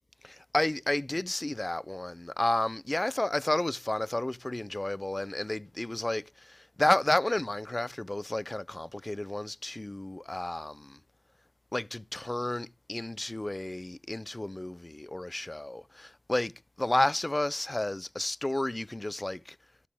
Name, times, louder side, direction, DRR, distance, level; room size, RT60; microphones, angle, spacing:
voice 1, 0.2-11.0 11.7-19.6, left 1 dB, 40° left, 0.4 m, -31 dB
12.5 x 6.6 x 3.5 m
wide cardioid pair, 45°, 0 cm